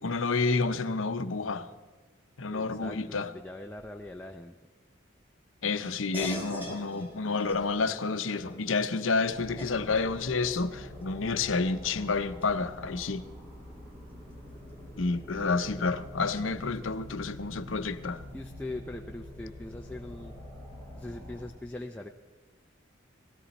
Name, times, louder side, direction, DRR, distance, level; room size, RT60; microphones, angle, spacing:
voice 1, 0.0-1.7 2.4-3.3 5.6-13.2 15.0-18.2, left 4 dB, 80° left, 0.8 m, -29 dB
voice 2, 2.5-4.5 15.4-15.9 18.3-20.3 21.0-22.1, left 2 dB, 5° left, 0.5 m, -41 dB
sound 1, 6.1-16.0, equal, 10° right, 2.2 m, -46 dB
sound 2, 9.3-21.5, left 1 dB, 40° right, 5.6 m, -46 dB
18.5 x 16.0 x 4.2 m
head